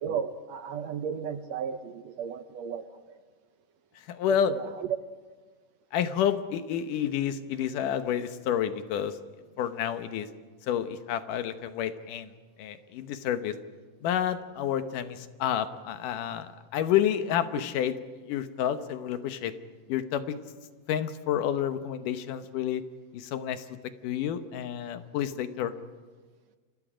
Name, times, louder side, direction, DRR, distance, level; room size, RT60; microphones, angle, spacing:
voice 1, 0.0-3.2 4.3-4.9, right 7 dB, 70° right, 9 dB, 1.7 m, -35 dB
voice 2, 4.1-4.5 5.9-9.2 9.6-10.3 10.7-12.3 12.6-13.5 14.0-17.9 18.3-19.5 19.9-20.4 20.9-22.8 23.1-23.6 24.0-25.7, left 10 dB, 80° left, 9 dB, 2.6 m, -29 dB
29.5 x 26.0 x 5.1 m, 1.4 s
omnidirectional pair, 3.7 m